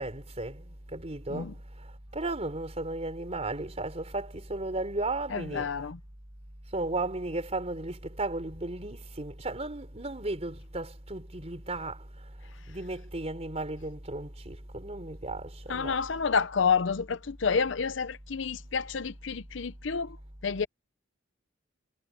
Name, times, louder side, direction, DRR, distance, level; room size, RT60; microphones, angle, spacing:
voice 1, 0.0-1.5 1.8-5.7 6.7-12.0 12.7-16.0, right 2 dB, 35° right, 3.8 m, -35 dB
voice 2, 5.3-6.0 15.7-20.2 20.4-20.7, left 5 dB, 70° left, 0.7 m, -29 dB
head